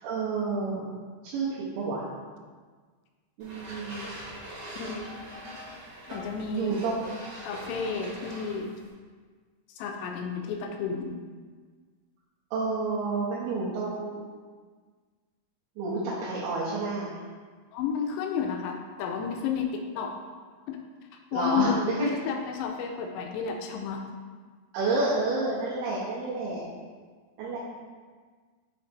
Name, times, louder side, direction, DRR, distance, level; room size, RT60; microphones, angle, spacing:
voice 1, 0.0-0.9 1.2-2.1 3.4-4.1 6.5-7.0 12.5-14.3 15.8-17.2 21.3-22.2 24.7-26.6 27.4-27.6, right 3 dB, 85° right, -9 dB, 3.3 m, -29 dB
sound 1, 3.4-8.9, right 1 dB, 65° right, 1.4 m, -42 dB
voice 2, 4.8-5.1 5.5-5.6 6.1-6.8 7.4-8.7 9.8-11.2 17.7-20.1 20.7-20.8 21.3-24.0, left 6 dB, 85° left, 3 dB, 2.5 m, -31 dB
7.8 x 3.3 x 4.4 m, 1.5 s
omnidirectional pair, 5.2 m